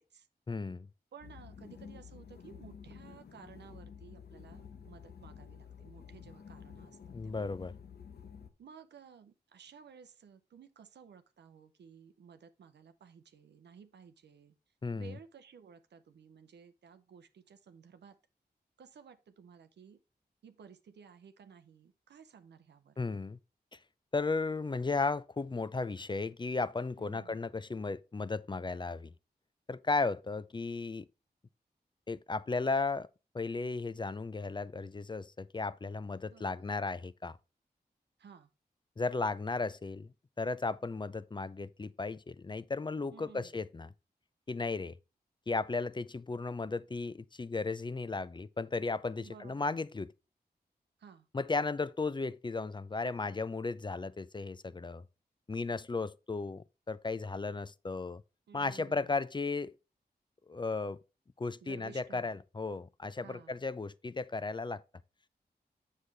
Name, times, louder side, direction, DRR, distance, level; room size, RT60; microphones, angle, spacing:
voice 1, 0.5-0.9 7.1-7.7 14.8-15.2 23.0-23.4 24.1-29.1 29.7-31.1 32.1-33.1 33.3-37.4 39.0-40.1 40.4-43.9 44.5-45.0 45.5-50.1 51.3-55.0 55.5-58.2 58.5-59.7 60.5-61.0 61.4-64.8, left 3 dB, 25° left, 0.4 m, -35 dB
voice 2, 1.1-7.0 7.2-7.5 8.6-14.5 14.9-18.2 18.8-20.0 20.4-23.0 27.0-27.4 36.2-36.7 38.2-38.5 43.1-43.5 49.2-49.7 51.0-51.3 58.5-59.2 61.6-62.3 63.2-63.6, right 7 dB, 90° right, 0.6 m, -55 dB
sound 1, 1.2-8.5, left 7 dB, 70° left, 0.8 m, -51 dB
7.5 x 6.5 x 3.3 m
cardioid pair, 40°, 17 cm